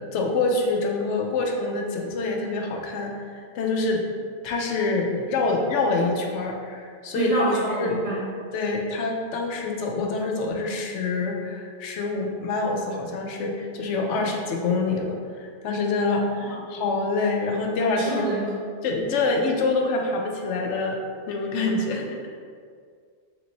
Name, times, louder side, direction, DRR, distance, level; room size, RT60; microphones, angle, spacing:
voice 1, 0.0-4.0 4.4-7.5 7.8-8.0 8.5-18.2 18.8-21.0 21.3-22.4, left 3 dB, 75° left, 1 dB, 0.9 m, -26 dB
voice 2, 7.1-8.2 14.1-14.3 16.4-16.6 18.0-18.5 21.9-22.0, right 2 dB, 35° right, -7 dB, 1.0 m, -27 dB
3.4 x 3.0 x 3.9 m, 2.1 s
omnidirectional pair, 1.2 m